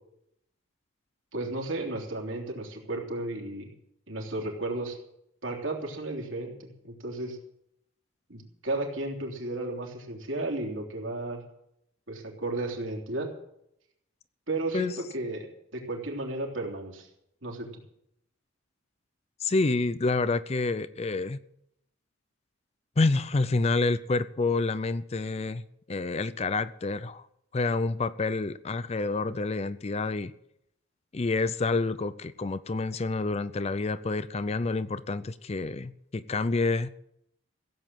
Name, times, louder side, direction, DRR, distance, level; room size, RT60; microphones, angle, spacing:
voice 1, 1.3-3.7 4.1-5.0 5.4-7.4 8.3-11.4 12.1-13.3 14.5-17.1 17.4-17.7, right 2 dB, 65° right, 0 dB, 3.5 m, -33 dB
voice 2, 19.4-21.4 23.0-25.6 25.9-27.2 27.5-30.3 31.1-36.9, left 3 dB, 30° left, 15 dB, 0.4 m, -28 dB
16.0 x 8.0 x 9.0 m, 0.77 s
head